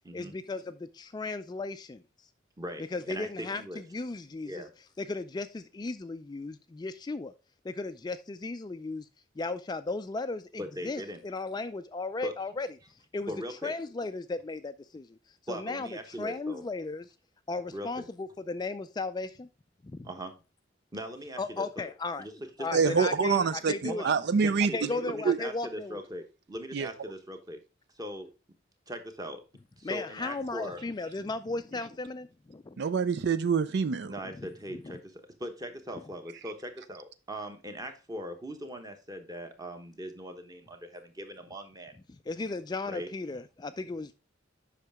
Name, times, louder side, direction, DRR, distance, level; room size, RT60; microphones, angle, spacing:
voice 1, 0.1-2.0 2.9-4.6 5.0-7.3 7.6-9.1 9.4-12.7 13.1-13.3 13.6-15.2 15.5-17.0 17.5-19.5 19.8-20.1 21.4-22.3 22.6-24.0 24.7-26.0 29.8-32.8 34.4-34.8 42.3-44.2, left 3 dB, 20° left, 0.3 m, -36 dB
voice 2, 2.6-3.8 4.4-4.7 10.6-11.2 12.2-12.4 13.3-13.7 15.5-16.6 17.7-18.1 20.0-20.4 20.9-21.9 22.2-22.3 22.6-23.1 23.9-27.6 27.9-28.3 28.9-29.4 29.8-30.8 34.0-41.9 42.9-43.1, equal, 20° right, 1.1 m, -40 dB
voice 3, 22.7-24.7 25.2-25.4 26.7-26.9 32.8-34.1, right 5 dB, 60° right, 0.4 m, -26 dB
8.1 x 5.8 x 3.5 m
head